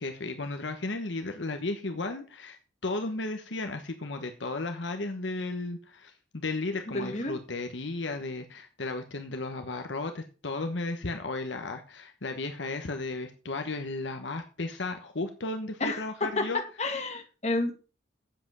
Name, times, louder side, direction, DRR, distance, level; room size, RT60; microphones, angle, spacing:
voice 1, 0.0-2.6 2.8-16.6, left 2 dB, 70° left, 6 dB, 1.1 m, -34 dB
voice 2, 6.9-7.3 15.8-17.7, left 2 dB, 35° left, 5 dB, 2.1 m, -30 dB
8.9 x 7.6 x 6.1 m, 0.36 s
head